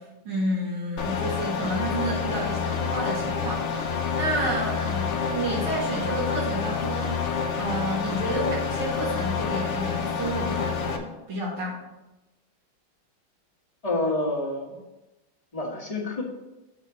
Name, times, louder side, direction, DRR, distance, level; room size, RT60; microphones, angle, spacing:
voice 1, 0.0-7.3 7.5-11.8, right 1 dB, 75° right, -6 dB, 2.8 m, -30 dB
sound 1, 1.0-11.0, left 6 dB, 70° left, 0.6 m, -28 dB
voice 2, 13.8-14.8 15.5-16.2, left 2 dB, 20° left, -2 dB, 1.2 m, -28 dB
7.7 x 4.1 x 6.7 m, 1.0 s
omnidirectional pair, 2.4 m